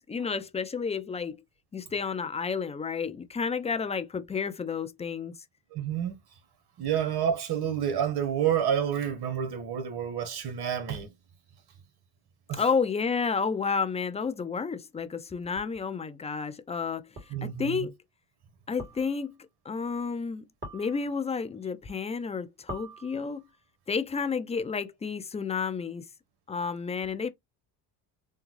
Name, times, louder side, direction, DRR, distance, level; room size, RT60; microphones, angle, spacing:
voice 1, 0.0-1.4 1.7-5.3 12.5-17.1 17.4-17.9 18.7-19.3 19.7-20.4 20.7-23.5 23.9-26.1 26.5-27.3, left 5 dB, 15° left, 0.4 m, -31 dB
voice 2, 5.7-6.1 6.8-11.1 12.5-12.6 17.3-17.9, right 9 dB, 55° right, 1.3 m, -29 dB
sound 1, 15.6-15.7 17.2-17.5 18.8-19.4 20.6-21.4 22.7-23.6, right 1 dB, 25° right, 2.3 m, -44 dB
3.5 x 2.3 x 3.1 m
supercardioid pair, 85°, 47 cm